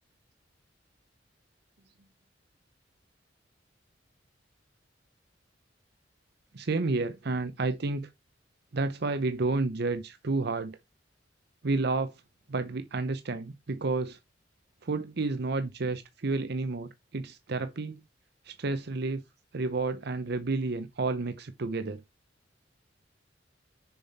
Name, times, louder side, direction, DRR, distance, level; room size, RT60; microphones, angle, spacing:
voice 1, 6.5-8.1 8.7-10.8 11.6-12.1 12.5-14.2 14.8-18.0 18.4-19.2 19.5-22.0, right 3 dB, 60° right, 0.7 m, -30 dB
6.9 x 5.6 x 4.1 m
head